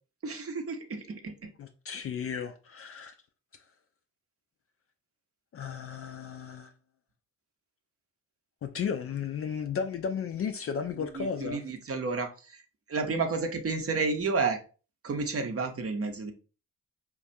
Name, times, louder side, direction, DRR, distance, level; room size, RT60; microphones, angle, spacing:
voice 1, 0.2-1.5 11.0-12.6 12.9-14.6 15.0-16.3, right 4 dB, 35° right, 0.7 m, -31 dB
voice 2, 1.6-3.1 5.5-6.7 8.6-11.6, left 7 dB, 35° left, 0.4 m, -34 dB
4.4 x 2.3 x 2.6 m
hypercardioid pair, 40°, 41 cm